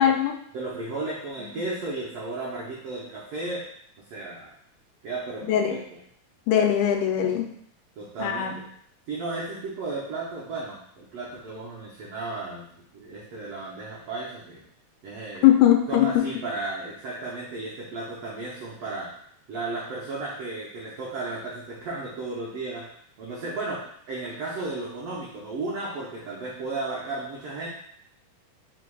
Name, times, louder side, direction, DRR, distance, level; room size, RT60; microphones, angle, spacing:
voice 1, 0.0-0.4 5.5-5.8 6.5-7.5 8.2-8.6 15.4-16.1, left 10 dB, 85° left, 4 dB, 2.0 m, -20 dB
voice 2, 0.5-3.7 4.1-4.5 5.0-6.0 8.0-8.6 9.1-14.6 15.0-15.5 15.9-19.1 19.5-22.8 23.2-23.8 24.1-27.7, right 3 dB, 85° right, -5 dB, 1.4 m, -34 dB
4.8 x 3.7 x 2.3 m, 0.68 s
omnidirectional pair, 3.6 m